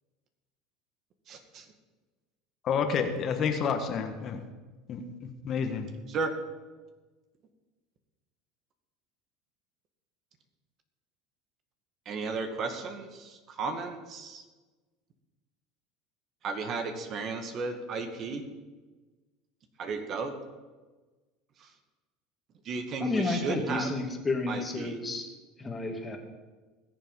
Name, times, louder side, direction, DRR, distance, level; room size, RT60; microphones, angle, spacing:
voice 1, 1.3-1.7 6.1-6.3 12.1-14.4 16.4-18.4 19.8-20.3 21.6-21.7 22.7-23.9 24.5-25.0, right 4 dB, 45° right, 6 dB, 1.9 m, -34 dB
voice 2, 2.6-4.4 4.9-5.9, left 6 dB, 45° left, 6 dB, 1.4 m, -29 dB
voice 3, 23.0-25.3 25.6-26.2, left 2 dB, 15° left, 3 dB, 2.2 m, -31 dB
20.0 x 7.3 x 5.5 m, 1.3 s
supercardioid pair, 110°, 0 cm